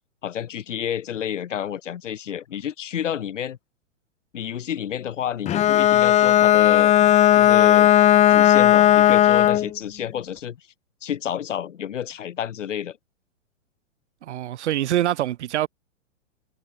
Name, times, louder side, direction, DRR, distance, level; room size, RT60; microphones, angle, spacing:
voice 1, 0.2-3.6 4.3-6.9 7.3-7.9 8.3-10.6 11.0-13.0, left 9 dB, 70° left, 7.1 m, -30 dB
Bowed string instrument, 5.5-9.7, left 12 dB, 20° left, 0.8 m, -16 dB
voice 2, 14.2-15.7, right 12 dB, 60° right, 2.9 m, -24 dB
hypercardioid pair, 120°, 38 cm